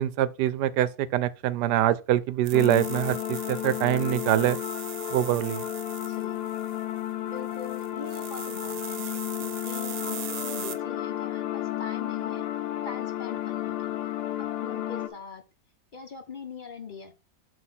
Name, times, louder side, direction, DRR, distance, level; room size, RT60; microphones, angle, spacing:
voice 1, 0.0-4.6 5.1-5.6, right 12 dB, 85° right, 1.2 m, -24 dB
sound 1, 2.4-7.0 7.4-10.8, right 9 dB, 65° right, 1.1 m, -40 dB
sound 2, 2.5-15.1, left 12 dB, 80° left, 1.3 m, -32 dB
voice 2, 6.1-6.4 7.2-12.4 12.8-14.1 14.4-15.4 15.9-17.1, left 5 dB, 50° left, 0.6 m, -42 dB
7.8 x 2.9 x 5.8 m
omnidirectional pair, 1.8 m